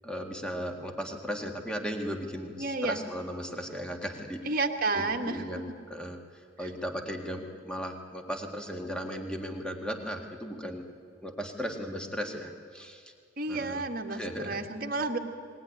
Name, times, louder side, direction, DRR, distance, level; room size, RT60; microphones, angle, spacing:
voice 1, 0.0-4.4 4.9-6.2 6.6-10.9 11.2-13.1 13.5-13.8 14.1-14.6, equal, 5° left, 3 dB, 1.7 m, -36 dB
voice 2, 2.6-3.0 4.4-5.4 6.6-6.7 13.4-15.2, right 3 dB, 45° right, 4 dB, 1.6 m, -31 dB
20.5 x 19.5 x 9.9 m, 2.1 s
head